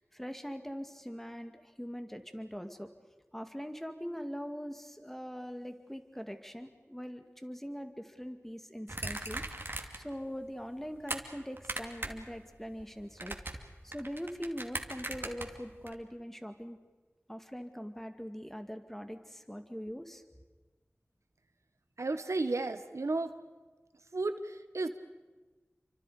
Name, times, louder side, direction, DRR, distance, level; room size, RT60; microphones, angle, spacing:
voice 1, 0.0-2.9 3.3-13.4 13.8-16.8 17.3-20.2, equal, 5° left, 7 dB, 2.2 m, -42 dB
sound 1, 8.9-10.1 10.5-11.2 11.6-12.3 12.5-15.9, right 2 dB, 45° right, 2.6 m, -39 dB
voice 2, 22.0-23.3 24.1-24.9, right 3 dB, 85° right, 9 dB, 1.4 m, -33 dB
29.5 x 25.0 x 5.1 m, 1.3 s
wide cardioid pair, 40°, 5 cm